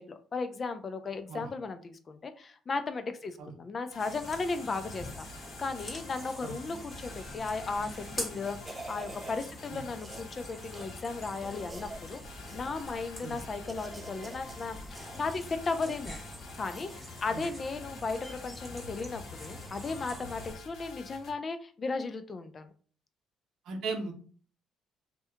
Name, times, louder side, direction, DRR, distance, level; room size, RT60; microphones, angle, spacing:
voice 1, 0.0-12.2 12.5-16.2 16.6-22.7, left 4 dB, 40° left, 9 dB, 0.4 m, -36 dB
sound 1, 3.9-21.3, left 3 dB, 70° left, 0.7 m, -49 dB
sound 2, 4.0-20.6, left 1 dB, 10° left, 1.5 m, -45 dB
sound 3, 7.6-7.9 8.2-9.4 10.0-10.4 10.7-10.9 11.4-12.0 12.5-12.9 13.3-14.7 14.9-16.0 16.7-17.1 17.4-17.5, right 2 dB, 20° right, 0.4 m, -47 dB
voice 2, 23.7-24.1, right 4 dB, 70° right, 4 dB, 0.7 m, -36 dB
2.7 x 2.2 x 3.4 m, 0.43 s
supercardioid pair, 80°, 0 cm